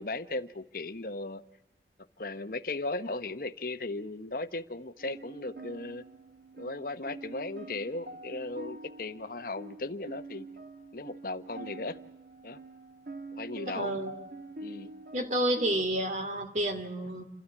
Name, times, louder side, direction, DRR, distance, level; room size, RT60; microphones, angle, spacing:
voice 1, 0.0-1.4 2.2-6.0 6.6-10.5 10.9-12.0 12.4-12.6 13.3-14.0 14.6-14.9, left 2 dB, 50° left, 1.0 m, -37 dB
sound 1, 5.0-15.9, right 2 dB, 55° right, 1.7 m, -46 dB
voice 2, 13.7-14.1 15.1-17.2, right 1 dB, 40° right, 2.7 m, -30 dB
29.0 x 13.0 x 8.3 m
head